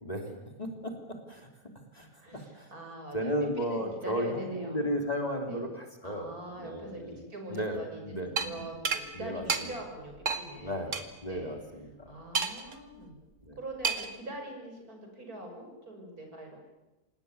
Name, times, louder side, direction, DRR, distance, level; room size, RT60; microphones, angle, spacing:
voice 1, 0.6-1.5 1.9-2.7 3.1-6.3 6.6-7.2 7.5-8.6 9.1-9.7 10.6-10.9 11.2-12.1 13.4-13.6, equal, 25° left, 3 dB, 3.4 m, -34 dB
voice 2, 2.2-4.8 5.5-5.6 6.0-11.0 11.3-11.6 12.1-13.2 13.6-16.7, right 1 dB, 75° right, 3 dB, 6.8 m, -43 dB
sound 1, 8.4-8.5 8.9-9.0 9.5-9.6 10.3-10.4 10.9-11.0 12.4-12.7 13.8-14.2, right 5 dB, 55° right, 2.1 m, -29 dB
27.0 x 18.5 x 9.6 m, 1.1 s
omnidirectional pair, 1.6 m